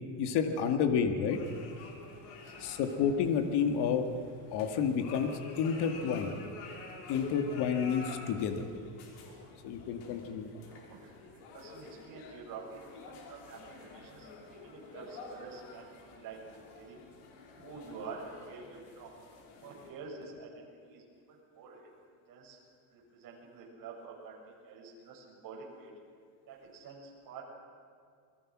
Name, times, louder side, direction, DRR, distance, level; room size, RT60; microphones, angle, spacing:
voice 1, 0.2-1.4 2.6-4.1 4.5-6.4 7.1-8.7 9.6-10.6, left 7 dB, 60° left, 6 dB, 2.3 m, -30 dB
sound 1, 1.2-19.9, left 4 dB, 85° left, 5.7 m, -49 dB
voice 2, 2.3-2.7 9.2-9.5 10.6-16.4 16.7-17.0 17.5-19.2 19.6-21.9 22.3-22.6 22.9-24.4 24.6-25.9 26.5-27.4, right 4 dB, 45° right, -2 dB, 7.0 m, -48 dB
28.5 x 21.5 x 6.3 m, 2.2 s
cardioid pair, 155°, 47 cm